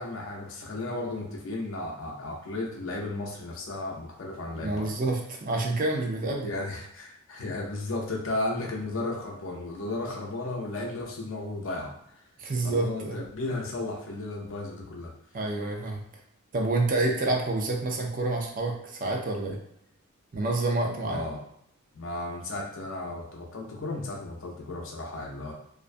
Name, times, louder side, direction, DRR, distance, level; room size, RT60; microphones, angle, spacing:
voice 1, 0.0-4.9 6.4-11.9 12.6-15.1 21.0-21.4 21.9-25.5, left 2 dB, 65° left, 0 dB, 0.6 m, -34 dB
voice 2, 4.6-6.5 12.4-13.2 15.3-16.0 16.5-19.6 20.3-21.2, right 2 dB, 40° right, 0 dB, 0.5 m, -28 dB
2.4 x 2.1 x 2.5 m, 0.72 s
head